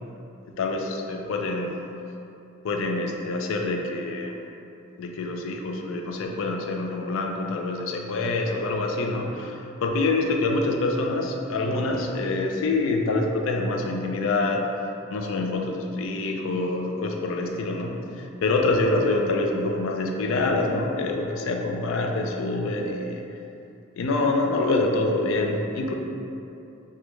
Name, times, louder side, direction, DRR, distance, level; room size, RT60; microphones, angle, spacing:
voice 1, 0.6-1.8 2.6-4.4 5.0-14.7 15.1-23.3 24.0-25.9, left 2 dB, 75° left, 2 dB, 0.3 m, -26 dB
3.1 x 2.3 x 3.0 m, 2.7 s
head